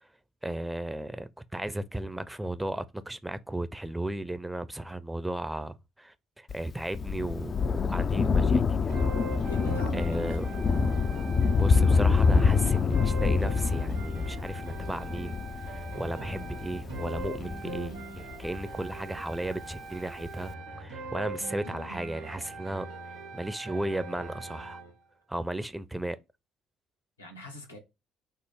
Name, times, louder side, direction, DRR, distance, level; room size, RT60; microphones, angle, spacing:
voice 1, 0.4-9.0 9.9-10.5 11.5-20.5 20.8-24.8 25.3-26.2, right 1 dB, 10° right, 0.5 m, -35 dB
Thunder, 6.5-19.4 20.3-20.4, left 5 dB, 40° left, 0.4 m, -26 dB
sound 1, 8.9-24.9, right 3 dB, 75° right, 1.4 m, -41 dB
voice 2, 9.4-10.7 27.2-27.8, equal, 90° left, 0.9 m, -42 dB
5.5 x 2.0 x 4.8 m
figure-of-eight pair, 50°, 0 cm